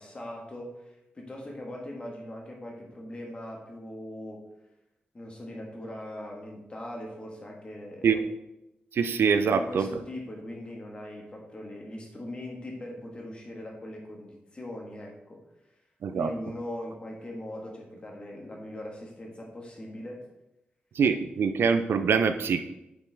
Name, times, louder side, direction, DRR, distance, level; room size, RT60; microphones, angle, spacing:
voice 1, 0.0-4.5 5.1-8.2 9.4-15.4 16.1-20.2, left 1 dB, 30° left, -1 dB, 1.6 m, -40 dB
voice 2, 8.9-9.9 16.0-16.3 21.0-22.6, right 6 dB, 80° right, 9 dB, 0.5 m, -24 dB
8.2 x 5.4 x 3.5 m, 0.89 s
wide cardioid pair, 155°, 4 cm